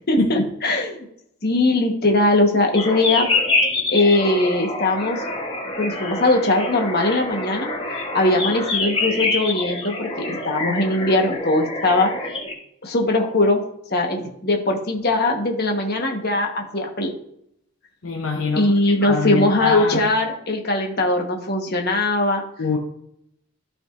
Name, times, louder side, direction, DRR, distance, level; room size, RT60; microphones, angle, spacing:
voice 1, 0.1-1.0 1.4-3.3 3.9-5.2 5.8-7.7 8.1-12.1 12.8-13.6 13.9-17.1 18.5-22.4, left 2 dB, 45° left, 2 dB, 1.3 m, -20 dB
sound 1, 2.8-12.5, left 3 dB, 25° left, 1.1 m, -26 dB
voice 2, 18.0-18.7 19.0-20.0 22.6-22.8, left 4 dB, 65° left, 1 dB, 0.9 m, -23 dB
12.0 x 5.0 x 2.6 m, 0.72 s
head